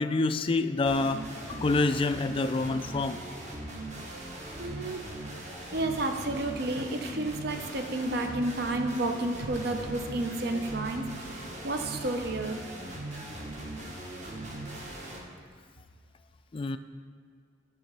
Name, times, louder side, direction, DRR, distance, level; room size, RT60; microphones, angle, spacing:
voice 1, 0.0-3.2 14.7-14.8 16.5-16.8, left 3 dB, 30° left, 10 dB, 0.3 m, -27 dB
sound 1, 0.9-15.2, right 1 dB, 40° right, 1.3 m, -40 dB
voice 2, 4.6-5.0 5.3-5.4 5.7-12.6, right 2 dB, 55° right, 5 dB, 0.7 m, -31 dB
11.0 x 3.7 x 6.7 m, 2.1 s
head